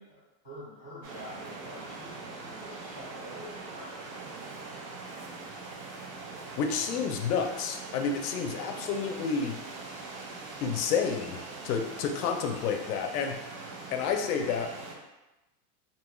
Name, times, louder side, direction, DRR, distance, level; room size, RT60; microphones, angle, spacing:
voice 1, 0.0-4.3, equal, 10° right, -14 dB, 0.4 m, -47 dB
sound 1, 1.0-14.9, right 3 dB, 80° right, 0.9 m, -42 dB
voice 2, 6.6-9.6 10.6-13.4 13.9-14.7, left 6 dB, 75° left, 4 dB, 0.5 m, -30 dB
2.8 x 2.3 x 2.9 m, 1.0 s
supercardioid pair, 180°, 47 cm